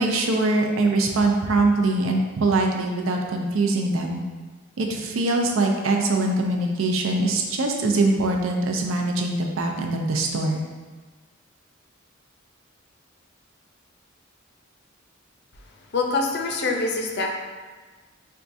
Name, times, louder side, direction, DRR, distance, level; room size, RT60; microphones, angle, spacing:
voice 1, 0.0-4.2 4.8-10.6, right 2 dB, 90° right, 2 dB, 0.5 m, -23 dB
voice 2, 15.9-17.3, left 3 dB, 55° left, 2 dB, 0.5 m, -24 dB
4.5 x 2.3 x 2.6 m, 1.4 s
head